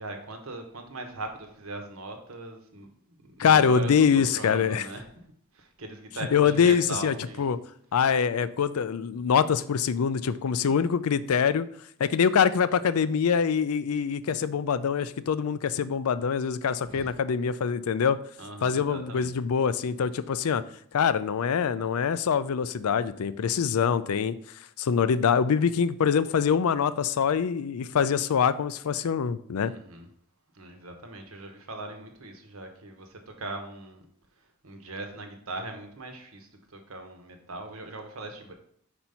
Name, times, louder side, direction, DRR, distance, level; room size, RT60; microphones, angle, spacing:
voice 1, 0.0-5.0 5.5-7.5 16.9-17.2 18.4-19.4 29.6-30.1 30.5-34.0 34.6-38.5, right 2 dB, 75° right, 4 dB, 1.2 m, -40 dB
voice 2, 3.4-4.9 6.3-7.6 7.9-11.7 12.0-18.2 18.6-20.6 20.9-24.4 24.8-29.7, left 7 dB, 90° left, 14 dB, 0.4 m, -24 dB
5.2 x 4.4 x 5.6 m, 0.66 s
head